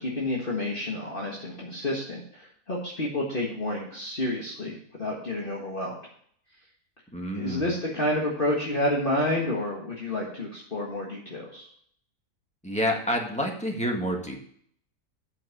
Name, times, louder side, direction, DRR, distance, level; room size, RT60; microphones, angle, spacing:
voice 1, 0.0-5.9 7.3-11.7, left 1 dB, 35° left, -3 dB, 1.9 m, -29 dB
voice 2, 7.1-7.7 12.6-14.4, equal, 5° left, 1 dB, 1.7 m, -28 dB
8.6 x 6.1 x 6.5 m, 0.62 s
omnidirectional pair, 1.6 m